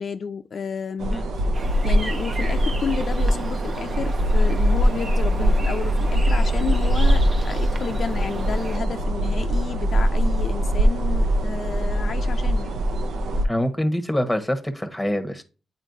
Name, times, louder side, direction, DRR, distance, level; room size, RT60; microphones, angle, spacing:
voice 1, 0.0-1.5 1.8-12.8, left 6 dB, 55° left, 0.4 m, -31 dB
sound 1, 1.0-13.4, equal, 85° right, 0.6 m, -22 dB
sound 2, 1.5-8.8, right 3 dB, 45° right, 0.9 m, -36 dB
voice 2, 13.4-15.4, equal, 5° left, 1.0 m, -25 dB
9.0 x 4.3 x 2.6 m
cardioid pair, 95°, 0 cm